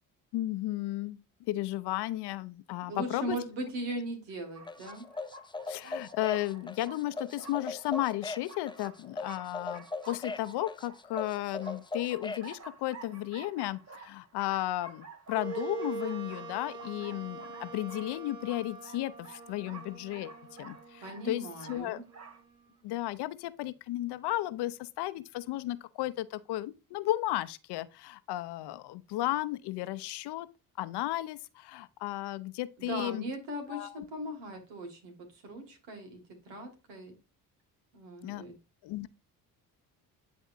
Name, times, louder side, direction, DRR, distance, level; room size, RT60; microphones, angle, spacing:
voice 1, 0.3-1.2 1.5-3.4 5.7-20.3 20.6-22.0 22.8-30.5 30.8-33.2 33.7-34.0 38.2-38.5 38.8-39.1, left 15 dB, 70° left, 0.6 m, -34 dB
voice 2, 2.9-5.1 21.0-22.0 32.8-36.2 36.4-37.1 37.9-38.5, right 1 dB, 80° right, 2.1 m, -39 dB
sound 1, 4.5-22.4, right 3 dB, 35° right, 1.4 m, -51 dB
sound 2, 4.7-12.5, left 3 dB, 10° left, 0.5 m, -39 dB
Wind instrument woodwind instrument, 15.3-22.8, right 4 dB, 10° right, 2.1 m, -44 dB
10.0 x 3.6 x 2.6 m
supercardioid pair, 60°, 42 cm